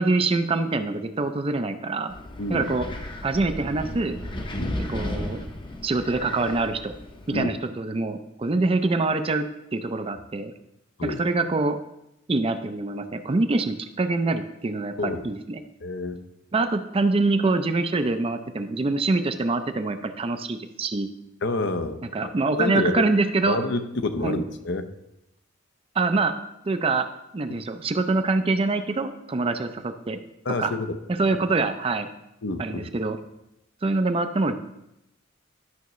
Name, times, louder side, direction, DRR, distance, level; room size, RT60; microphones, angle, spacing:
voice 1, 0.0-2.1 2.5-2.9 3.2-4.2 4.9-5.4 5.8-6.9 7.3-9.5 9.7-10.5 11.0-11.8 12.3-15.6 16.5-21.1 22.0-23.6 24.2-24.4 26.0-26.3 26.6-27.1 27.3-30.2 30.6-30.7 31.2-32.1 32.6-33.2 33.8-34.6, right 3 dB, 30° right, 9 dB, 0.5 m, -25 dB
Wind, 2.1-7.4, left 1 dB, 25° left, 0.7 m, -34 dB
voice 2, 2.4-2.7 4.5-4.8 7.3-7.5 11.0-11.2 15.0-15.3 15.8-16.2 21.4-22.3 22.6-23.1 23.5-24.9 30.4-31.0 32.4-32.9, left 3 dB, 60° left, 9 dB, 0.6 m, -28 dB
11.5 x 5.6 x 3.1 m, 0.86 s
head